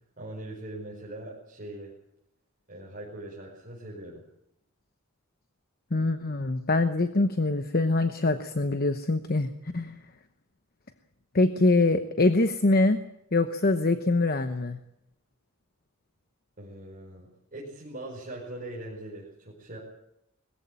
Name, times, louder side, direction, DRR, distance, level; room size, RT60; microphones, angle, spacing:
voice 1, 0.2-1.9 2.7-4.2 16.6-19.8, right 1 dB, 40° right, -5 dB, 5.1 m, -41 dB
voice 2, 5.9-10.0 11.3-13.0 13.3-14.8, left 2 dB, 45° left, 9 dB, 1.0 m, -24 dB
21.5 x 14.5 x 8.8 m, 0.81 s
head